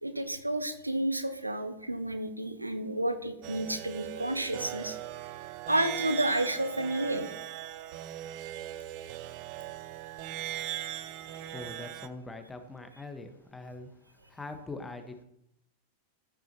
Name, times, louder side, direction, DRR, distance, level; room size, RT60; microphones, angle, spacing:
voice 1, 0.0-5.0 5.7-7.3 11.3-11.5, right 1 dB, 85° right, 9 dB, 1.0 m, -31 dB
sound 1, 3.4-12.1, right 12 dB, 45° right, 0.7 m, -39 dB
voice 2, 11.5-14.0 14.3-15.2, left 3 dB, 10° left, 7 dB, 1.2 m, -42 dB
14.0 x 8.8 x 2.9 m, 0.76 s
figure-of-eight pair, 90°, 0 cm